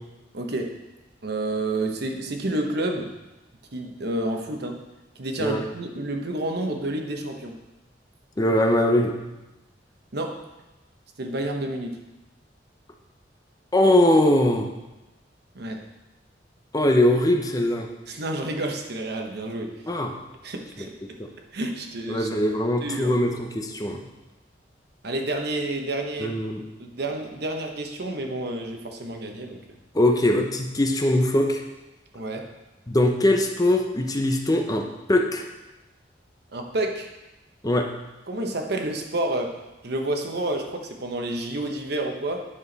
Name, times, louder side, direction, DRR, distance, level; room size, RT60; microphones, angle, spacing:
voice 1, 0.3-0.7 1.2-3.1 3.7-4.8 5.2-7.6 10.1-10.4 11.2-12.0 15.5-15.8 18.1-19.7 20.4-20.9 21.5-22.3 22.8-23.1 25.0-26.3 26.8-29.6 32.1-32.5 36.5-37.1 38.3-42.5, right 1 dB, 65° right, 3 dB, 1.0 m, -29 dB
voice 2, 8.4-9.1 13.7-14.7 16.7-17.9 19.9-20.1 22.1-24.0 26.2-26.6 29.9-31.6 32.9-35.4 37.6-37.9, left 1 dB, 20° left, 3 dB, 0.7 m, -21 dB
9.5 x 6.0 x 4.1 m, 1.0 s
head